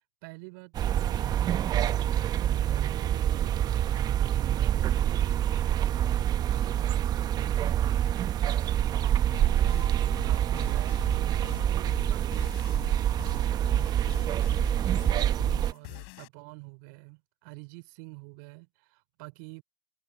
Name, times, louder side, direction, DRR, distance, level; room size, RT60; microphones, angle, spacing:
voice 1, 0.2-9.3 9.6-19.6, right 30 dB, 60° right, 5.0 m, -48 dB
sound 1, 0.7-15.7, right 11 dB, 35° right, 0.9 m, -26 dB
sound 2, 9.3-16.3, left 39 dB, 55° left, 4.1 m, -44 dB
hypercardioid pair, 100°, 12 cm